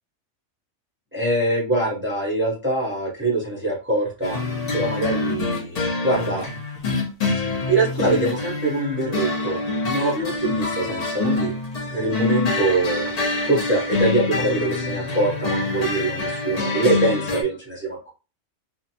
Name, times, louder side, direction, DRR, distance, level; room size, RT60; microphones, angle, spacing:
voice 1, 1.1-4.4 4.7-6.4 7.7-11.5 11.9-13.1 13.4-18.1, right 2 dB, 15° right, -3 dB, 0.4 m, -24 dB
sound 1, 4.2-17.4, left 3 dB, 80° left, 0.3 m, -26 dB
2.6 x 2.1 x 2.7 m, 0.32 s
omnidirectional pair, 1.4 m